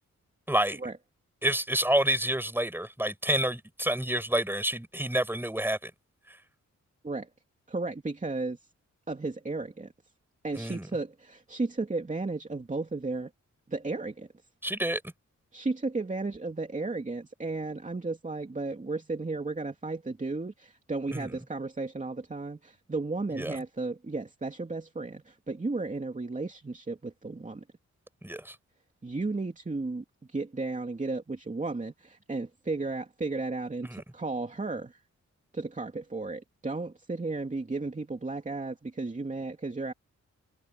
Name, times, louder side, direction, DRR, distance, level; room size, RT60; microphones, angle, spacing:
voice 1, 0.5-0.8 1.4-5.9 6.3-6.4 10.6-10.9 14.6-15.0 21.1-21.3 23.3-23.6 28.2-28.5 33.9-34.0, right 1 dB, 5° right, 6.1 m, -28 dB
voice 2, 7.7-8.6 9.1-9.9 10.4-13.3 13.7-14.3 15.5-27.6 29.0-35.0 35.5-39.9, right 3 dB, 25° right, 2.7 m, -34 dB
wide cardioid pair, 100°, 29 cm